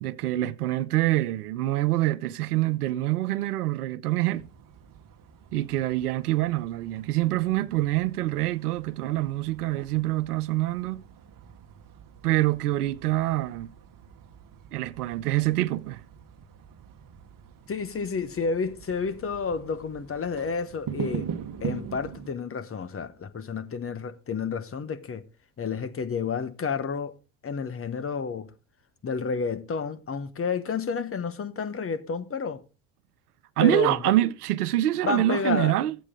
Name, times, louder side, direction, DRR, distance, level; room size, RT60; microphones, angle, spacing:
voice 1, 0.0-4.5 5.5-11.0 12.2-13.7 14.7-16.0 33.6-36.0, right 15 dB, 85° right, 0.6 m, -25 dB
sound 1, 4.3-22.3, right 7 dB, 45° right, 1.3 m, -42 dB
voice 2, 17.7-21.3 21.6-25.2 25.6-27.1 27.4-28.5 29.0-32.6 33.6-34.1 35.0-35.8, left 5 dB, 30° left, 1.2 m, -30 dB
12.5 x 8.3 x 3.7 m
hypercardioid pair, 60°, 45 cm